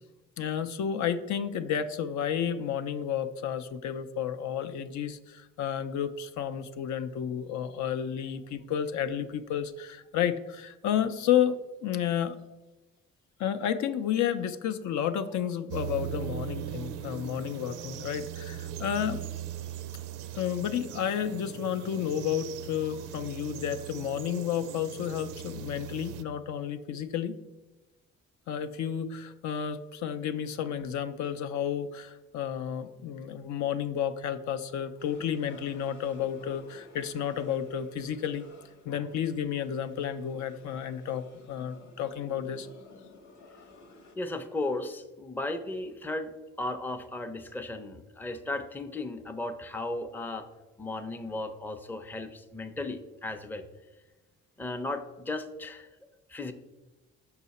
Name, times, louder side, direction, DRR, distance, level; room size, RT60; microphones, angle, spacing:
voice 1, 0.4-12.4 13.4-19.2 20.3-27.4 28.5-38.4 38.9-42.7, left 9 dB, 70° left, 10 dB, 0.5 m, -31 dB
sound 1, 15.7-26.2, right 10 dB, 80° right, 0.5 m, -39 dB
sound 2, 35.0-44.2, left 3 dB, 85° left, 1.1 m, -54 dB
voice 2, 44.2-50.5 50.8-53.6 54.6-55.9 56.3-56.5, left 2 dB, 5° left, 7 dB, 0.5 m, -35 dB
5.7 x 4.7 x 4.1 m, 1.1 s
cardioid pair, 90°, 30 cm